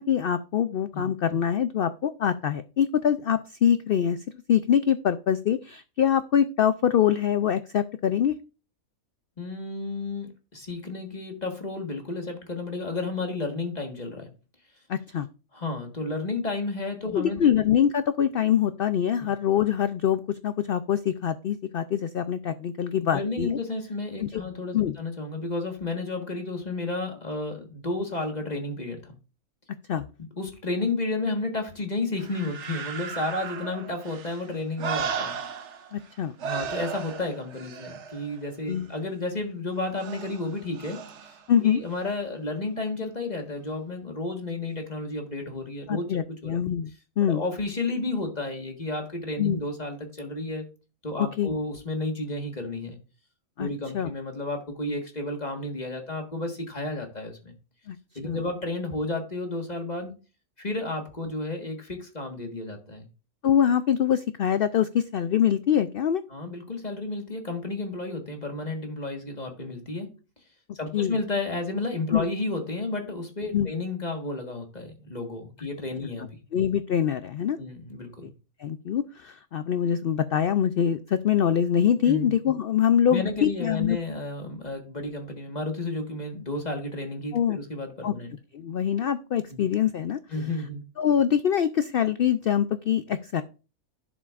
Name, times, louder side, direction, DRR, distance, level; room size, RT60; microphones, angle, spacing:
voice 1, 0.0-4.2 4.5-8.3 14.9-15.3 17.1-23.5 24.2-24.4 24.7-25.0 29.9-30.0 35.9-36.3 38.7-38.9 41.5-41.8 45.9-46.9 47.2-47.4 49.4-49.6 51.2-51.6 53.6-53.7 53.9-54.1 57.9-58.0 58.2-58.4 63.4-66.2 70.9-71.1 72.1-72.2 73.5-73.7 76.5-77.6 78.2-78.3 78.6-84.0 87.3-87.6 88.0-88.1 88.5-90.2 91.0-93.4, left 9 dB, 90° left, 12 dB, 0.5 m, -24 dB
voice 2, 9.4-14.3 15.5-17.5 19.2-19.3 23.1-29.1 30.4-35.3 36.4-41.3 41.6-46.6 47.2-50.7 51.0-53.0 53.6-57.5 58.1-60.1 60.6-63.1 66.3-70.1 70.7-76.4 77.6-78.3 82.0-82.3 83.1-88.3 89.5-89.6 90.3-90.9, left 2 dB, 30° left, 3 dB, 1.6 m, -32 dB
sound 1, 32.2-36.1 36.4-38.9 40.0-41.4 41.9-42.0, right 6 dB, 55° right, 1.1 m, -36 dB
11.0 x 7.3 x 2.4 m, 0.33 s
omnidirectional pair, 1.5 m